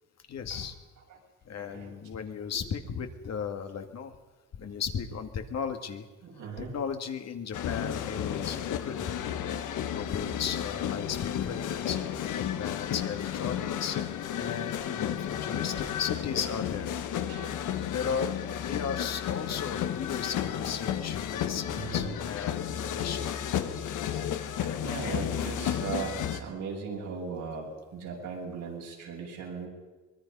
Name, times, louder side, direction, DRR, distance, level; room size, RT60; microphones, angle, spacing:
voice 1, 0.3-0.7 1.5-4.1 4.6-6.1 6.6-9.6 9.9-14.0 14.3-16.9 17.9-23.4, left 7 dB, 60° left, 6 dB, 2.1 m, -36 dB
voice 2, 1.6-2.0 6.2-6.7 17.3-17.7 21.7-22.2 23.0-23.1 24.8-29.7, right 5 dB, 80° right, -1 dB, 7.0 m, -38 dB
sound 1, 7.5-26.4, left 9 dB, 80° left, 1.4 m, -32 dB
23.5 x 21.0 x 5.5 m, 1.2 s
cardioid pair, 90°, 30 cm